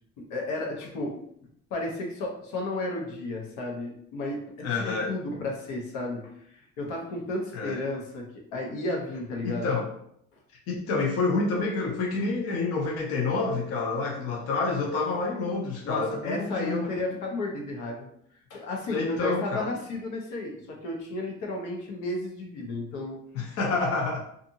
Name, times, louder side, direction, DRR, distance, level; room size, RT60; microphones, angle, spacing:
voice 1, 0.3-1.2 1.7-9.7 15.8-18.1 18.5-23.2, left 2 dB, 85° left, 0 dB, 0.9 m, -33 dB
voice 2, 4.6-5.1 7.5-7.8 9.4-9.9 10.7-17.2 18.9-19.7 23.3-24.2, left 3 dB, 55° left, -1 dB, 0.5 m, -28 dB
2.5 x 2.5 x 2.7 m, 0.70 s
cardioid pair, 175°, 30 cm